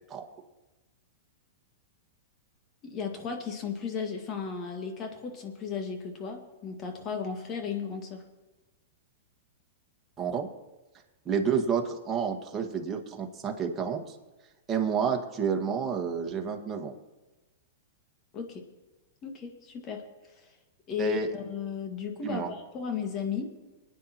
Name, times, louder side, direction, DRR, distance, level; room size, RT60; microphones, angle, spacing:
voice 1, 2.8-8.2 18.3-18.6 19.2-20.6 20.9-23.5, left 6 dB, 35° left, 4 dB, 1.9 m, -35 dB
voice 2, 10.2-10.5 11.3-14.1 14.7-16.9 21.0-21.3 22.2-22.5, right 6 dB, 25° right, 2 dB, 1.7 m, -29 dB
26.5 x 9.6 x 3.0 m, 1.1 s
hypercardioid pair, 115°, 0 cm